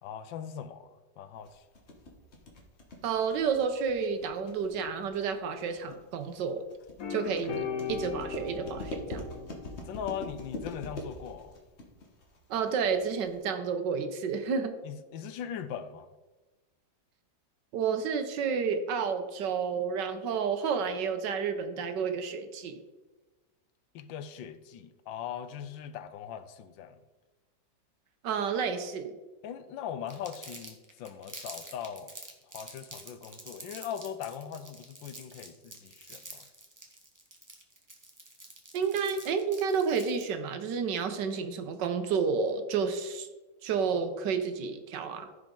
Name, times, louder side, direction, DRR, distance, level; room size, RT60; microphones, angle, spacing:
voice 1, 0.0-1.6 9.8-11.6 14.8-16.1 23.9-27.0 29.4-32.1 32.5-36.4, left 8 dB, 85° left, 1.4 m, -40 dB
sound 1, 1.5-13.4, left 1 dB, 40° left, 1.5 m, -43 dB
voice 2, 3.0-6.6 7.1-9.2 12.5-14.8 17.7-22.8 28.2-29.1 38.7-43.3 43.6-45.3, right 6 dB, 70° right, 1.4 m, -30 dB
sound 2, 7.0-10.5, left 7 dB, 55° left, 1.2 m, -38 dB
Crumpling crinkling, 30.1-40.3, right 1 dB, 15° right, 0.9 m, -47 dB
14.5 x 5.0 x 3.8 m
omnidirectional pair, 2.0 m